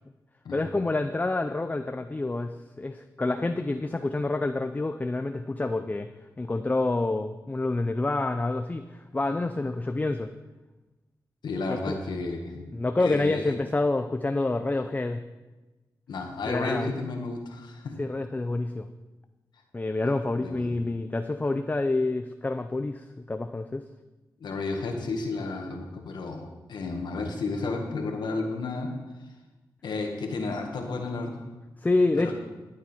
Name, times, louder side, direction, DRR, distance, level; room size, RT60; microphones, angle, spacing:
voice 1, 0.5-6.1 6.4-10.3 11.7-12.0 12.7-15.2 16.5-16.9 18.0-18.9 19.7-23.8 31.8-32.3, left 2 dB, 20° left, 8 dB, 0.5 m, -28 dB
voice 2, 11.4-13.6 16.1-18.0 20.3-20.7 24.4-28.9 29.8-31.4 32.2-32.3, left 3 dB, 80° left, 3 dB, 1.7 m, -32 dB
12.5 x 8.8 x 4.4 m, 1.1 s
cardioid pair, 70°, 7 cm